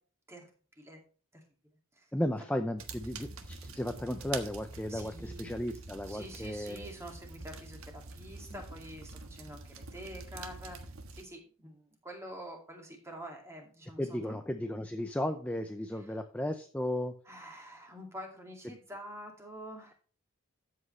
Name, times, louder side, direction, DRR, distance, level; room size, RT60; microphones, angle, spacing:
voice 1, 2.1-6.9 14.0-17.1, left 1 dB, 5° left, 6 dB, 0.5 m, -35 dB
sound 1, 2.8-11.2, right 3 dB, 75° right, 1.4 m, -46 dB
voice 2, 4.9-5.4 6.1-14.2 16.1-16.2 17.3-19.9, equal, 10° right, 2 dB, 2.2 m, -47 dB
13.0 x 7.7 x 3.2 m, 0.39 s
head